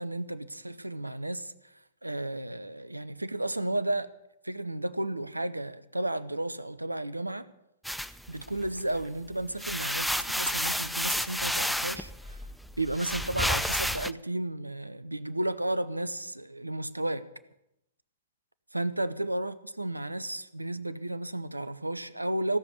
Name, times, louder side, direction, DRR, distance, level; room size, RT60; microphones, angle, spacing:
voice 1, 0.0-4.1 4.4-7.5 8.3-12.4 12.8-17.3 18.7-22.6, right 1 dB, 85° right, 0.9 m, -33 dB
sound 1, 7.9-9.0 9.4-14.1, equal, ahead, 0.5 m, -31 dB
17.0 x 7.2 x 9.7 m
figure-of-eight pair, 105°, 0 cm